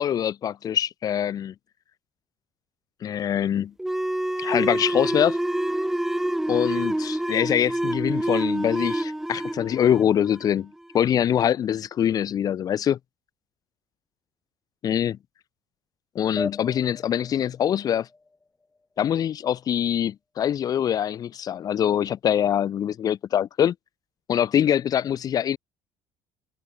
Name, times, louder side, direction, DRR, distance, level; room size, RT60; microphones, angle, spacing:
voice 1, 0.0-1.5 3.0-3.7 4.4-5.4 6.5-13.0 14.8-15.2 16.1-18.1 19.0-23.7 24.3-25.6, left 9 dB, 35° left, 0.9 m, -24 dB
sound 1, 3.8-11.0, right 1 dB, 5° right, 5.5 m, -27 dB
sound 2, 16.4-19.3, left 3 dB, 10° left, 3.3 m, -38 dB
cardioid pair, 160°, 11 cm